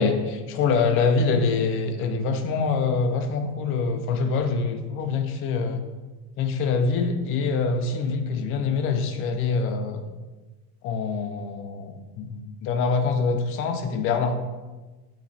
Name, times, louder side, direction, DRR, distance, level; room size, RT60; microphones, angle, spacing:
voice 1, 0.0-5.8 6.4-10.1 10.8-14.4, left 4 dB, 30° left, 6 dB, 0.4 m, -25 dB
8.5 x 3.1 x 4.1 m, 1.2 s
cardioid pair, 155°, 48 cm